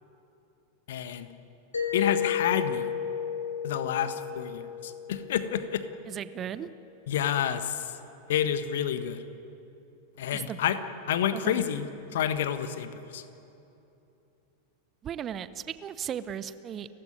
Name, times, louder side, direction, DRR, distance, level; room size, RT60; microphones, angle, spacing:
voice 1, 0.9-1.3 1.9-2.9 3.6-5.8 7.1-7.9 8.3-9.2 10.2-10.8 11.1-13.2, left 9 dB, 55° left, 11 dB, 1.4 m, -29 dB
Mallet percussion, 1.7-6.3, left 8 dB, 75° left, 4.2 m, -33 dB
voice 2, 6.1-6.7 10.3-10.6 11.3-11.6 15.0-16.9, right 9 dB, 25° right, 15 dB, 0.8 m, -36 dB
30.0 x 16.0 x 9.5 m, 2.9 s
figure-of-eight pair, 90°, 0 cm